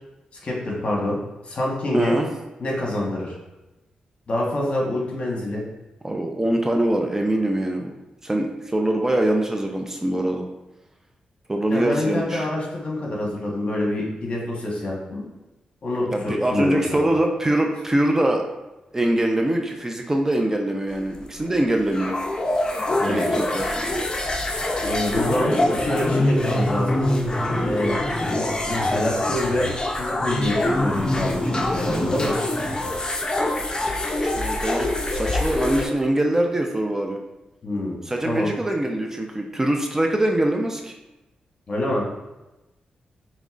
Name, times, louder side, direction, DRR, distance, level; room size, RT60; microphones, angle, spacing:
voice 1, 0.4-1.2 1.4-2.2 2.6-3.3 4.3-5.6 11.7-15.3 15.8-17.0 22.9-23.4 24.8-27.0 27.6-28.0 28.7-29.7 29.9-32.3 37.6-38.0 38.2-38.5 41.7-42.1, left 1 dB, 50° left, -2 dB, 1.2 m, -26 dB
voice 2, 1.9-2.3 6.0-7.9 8.2-10.4 11.5-12.5 16.1-18.4 18.9-22.2 23.1-23.8 25.4-25.6 25.9-26.0 34.2-37.2 38.0-40.9, right 1 dB, 20° right, 2 dB, 0.4 m, -23 dB
sound 1, 20.9-35.9, left 1 dB, 30° left, 0.6 m, -24 dB
5.1 x 3.1 x 2.4 m, 1.0 s
cardioid pair, 80°, 3 cm